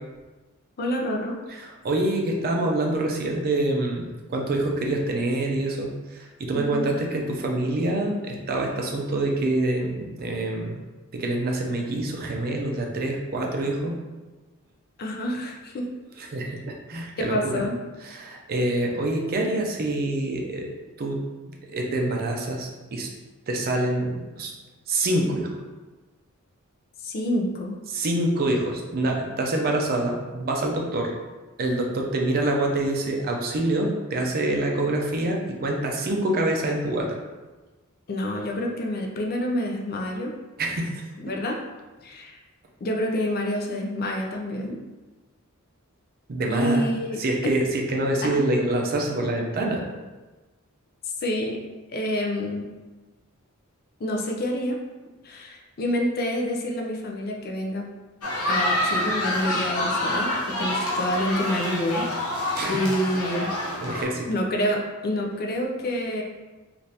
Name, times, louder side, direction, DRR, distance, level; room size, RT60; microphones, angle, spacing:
voice 1, 0.8-1.4 6.5-6.9 15.0-15.9 17.2-17.8 27.0-27.8 38.1-40.3 41.2-41.6 42.0-42.4 42.8-44.8 46.5-47.5 48.2-48.4 51.0-51.6 51.9-52.7 54.0-54.8 55.2-57.9 58.5-62.1 62.7-63.5 64.3-66.2, left 1 dB, 45° left, 0 dB, 0.4 m, -27 dB
voice 2, 1.5-10.8 11.1-14.0 16.2-17.7 18.0-21.2 21.7-23.1 23.5-24.5 24.9-25.5 27.9-31.1 31.6-37.2 40.6-41.0 46.3-46.8 47.2-49.8 62.5-62.8 63.8-64.3, right 1 dB, 45° right, 1 dB, 0.5 m, -26 dB
sound 1, 58.2-64.0, left 1 dB, 80° left, 0.7 m, -27 dB
3.2 x 2.5 x 2.7 m, 1.2 s
head